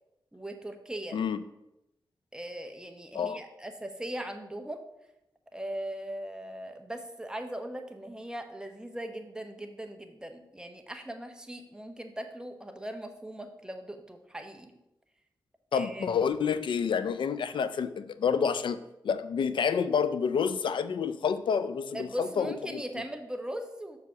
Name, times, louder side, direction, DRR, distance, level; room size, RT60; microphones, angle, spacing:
voice 1, 0.3-1.2 2.3-4.8 5.5-14.7 15.7-16.1 21.9-24.0, right 1 dB, 10° right, 5 dB, 0.9 m, -39 dB
voice 2, 1.1-1.4 3.1-3.4 15.7-22.8, left 6 dB, 80° left, 12 dB, 0.4 m, -29 dB
6.3 x 4.8 x 5.7 m, 0.89 s
cardioid pair, 75°, 8 cm